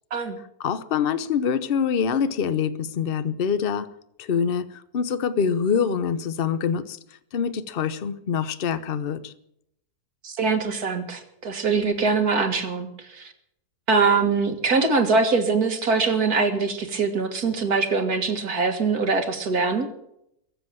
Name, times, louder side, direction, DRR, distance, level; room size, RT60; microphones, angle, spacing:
voice 1, 0.6-3.9 4.2-7.0 7.3-9.3, left 7 dB, 45° left, 14 dB, 0.8 m, -25 dB
voice 2, 10.2-13.3 13.9-19.9, right 4 dB, 70° right, 6 dB, 2.3 m, -23 dB
22.5 x 7.6 x 7.6 m, 0.77 s
omnidirectional pair, 1.7 m